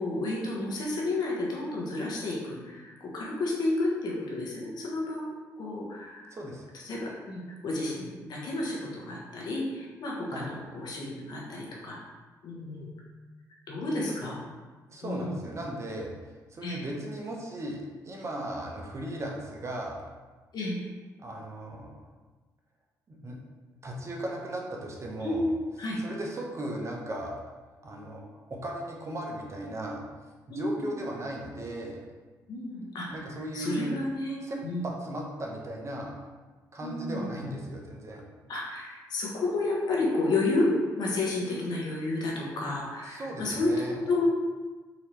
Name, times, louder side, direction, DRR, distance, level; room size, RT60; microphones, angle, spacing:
voice 1, 0.0-5.3 5.6-6.3 6.7-12.0 12.4-12.9 13.7-14.4 15.0-15.4 16.6-16.8 20.5-20.8 25.2-26.0 30.5-31.0 32.5-33.2 33.5-34.8 36.8-37.3 38.5-40.7 41.0-44.2, left 2 dB, 65° left, -3 dB, 1.0 m, -31 dB
voice 2, 6.3-6.7 10.3-10.5 13.8-14.3 14.9-20.1 21.2-21.9 23.1-23.4 23.8-25.4 26.0-27.3 27.8-28.2 28.5-30.0 30.5-32.0 33.1-34.0 34.4-34.6 34.8-36.1 36.7-38.2 43.1-44.0, right 1 dB, 40° right, -1 dB, 0.9 m, -37 dB
4.0 x 2.8 x 3.2 m, 1.3 s
supercardioid pair, 70°, 8 cm